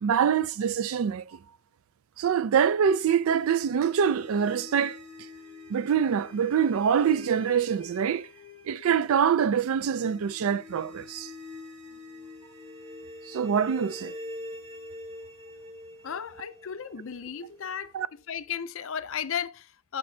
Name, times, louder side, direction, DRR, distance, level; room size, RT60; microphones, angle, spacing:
voice 1, 0.0-1.4 2.2-5.0 5.7-8.3 8.7-11.3 13.3-14.1 17.9-18.1, right 7 dB, 70° right, 0.3 m, -25 dB
sound 1, 2.8-17.8, left 2 dB, 30° right, 1.9 m, -45 dB
voice 2, 16.0-17.9 18.3-20.0, left 8 dB, 60° left, 0.5 m, -34 dB
7.4 x 5.9 x 2.7 m
head